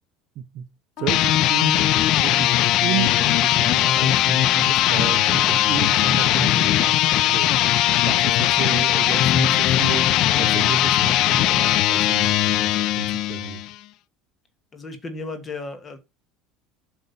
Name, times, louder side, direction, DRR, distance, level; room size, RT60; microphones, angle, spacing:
voice 1, 0.4-0.7 1.0-1.9 2.2-7.5 8.0-13.6, right 10 dB, 40° right, 0.7 m, -32 dB
sound 1, 1.0-13.7, left 13 dB, 45° left, 0.5 m, -19 dB
voice 2, 14.7-16.0, left 3 dB, 20° left, 1.6 m, -34 dB
8.0 x 5.2 x 5.4 m
cardioid pair, 170°, 0 cm